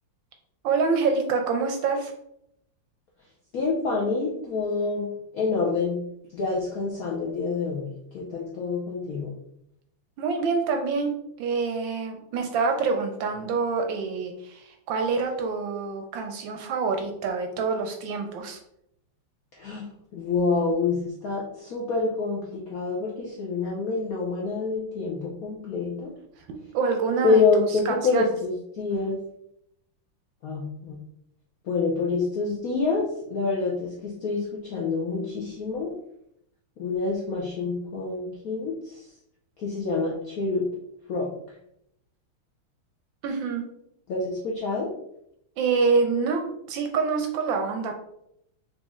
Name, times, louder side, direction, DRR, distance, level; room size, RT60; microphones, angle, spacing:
voice 1, 0.6-2.1 10.2-11.1 11.4-18.6 26.5-28.3 43.2-43.6 45.6-47.9, right 4 dB, 75° right, 4 dB, 1.2 m, -26 dB
voice 2, 3.5-6.0 6.3-7.9 8.1-9.3 19.6-19.9 20.1-26.1 27.2-29.2 30.4-31.0 31.7-35.9 36.8-39.0 39.6-40.7 41.1-41.3 44.1-44.9, left 4 dB, 75° left, -2 dB, 0.8 m, -27 dB
4.0 x 3.1 x 3.6 m, 0.77 s
omnidirectional pair, 2.4 m